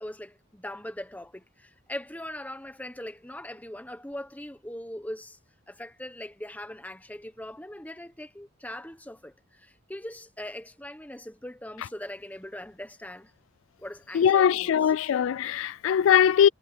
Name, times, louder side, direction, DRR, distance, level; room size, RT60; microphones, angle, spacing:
voice 1, 0.0-5.4 5.7-13.3 13.8-14.9, left 1 dB, 10° left, 1.2 m, -40 dB
voice 2, 14.1-16.5, left 8 dB, 70° left, 0.3 m, -21 dB
head